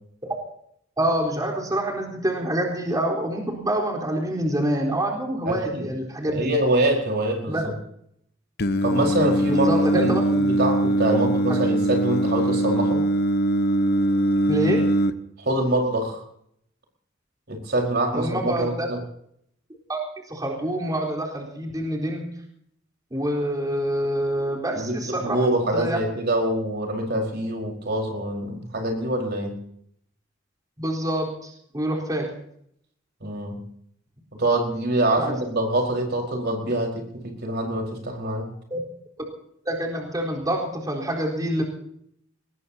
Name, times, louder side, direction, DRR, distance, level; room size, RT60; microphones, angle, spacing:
voice 1, 1.0-6.5 7.5-7.7 9.5-10.2 11.5-11.6 14.5-14.8 18.1-18.9 19.9-20.0 20.3-22.3 23.1-26.0 30.8-32.3 35.2-35.3 38.7-38.8 39.7-41.6, right 1 dB, 20° right, -1 dB, 4.1 m, -26 dB
voice 2, 5.5-5.9 6.2-7.7 8.8-13.0 15.4-16.2 17.5-19.0 24.7-29.6 33.2-33.6 34.3-38.5, right 1 dB, 55° right, 1 dB, 4.7 m, -25 dB
Singing, 8.6-15.1, right 1 dB, 55° left, 1.0 m, -22 dB
23.0 x 20.5 x 2.8 m, 0.70 s
head